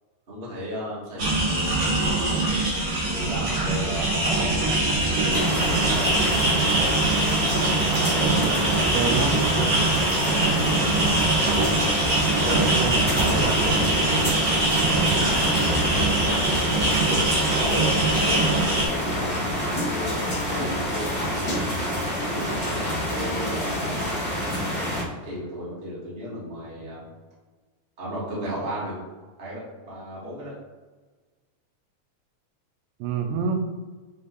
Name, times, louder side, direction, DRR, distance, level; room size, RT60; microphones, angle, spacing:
voice 1, 0.3-2.5 3.0-7.0 9.7-9.9 12.4-12.7 12.9-16.7 17.5-18.0 18.4-19.5 19.9-21.5 22.3-24.2 24.9-27.1 28.0-29.0 29.4-30.5, equal, 65° right, -7 dB, 0.5 m, -35 dB
sound 1, 1.2-18.9, right 2 dB, 45° right, 1.5 m, -23 dB
sound 2, 5.3-25.0, equal, 75° left, 0.5 m, -27 dB
voice 2, 8.9-9.3 12.3-13.8 33.0-33.6, right 5 dB, 90° right, 4 dB, 2.9 m, -28 dB
7.7 x 3.2 x 4.0 m, 1.3 s
omnidirectional pair, 4.8 m